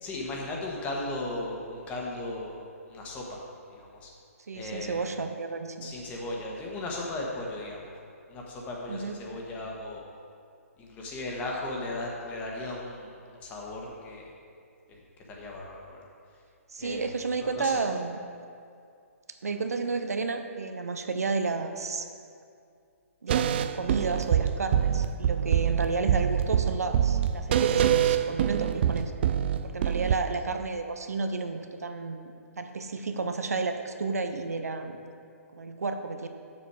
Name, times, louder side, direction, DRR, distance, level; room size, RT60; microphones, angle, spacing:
voice 1, 0.0-2.6 2.9-3.4 3.7-4.1 4.5-5.0 5.8-7.9 8.3-10.0 10.8-13.1 13.4-14.3 15.3-16.0 16.8-17.1 17.4-17.8, left 2 dB, 20° left, -2 dB, 1.4 m, -36 dB
voice 2, 4.5-5.9 8.9-9.2 16.7-18.2 19.4-22.1 23.2-29.1 29.6-35.0 35.5-36.3, right 4 dB, 85° right, 7 dB, 0.7 m, -32 dB
sound 1, 23.3-30.2, right 9 dB, 45° right, 0.3 m, -25 dB
7.2 x 6.8 x 4.8 m, 2.4 s
hypercardioid pair, 145°, 8 cm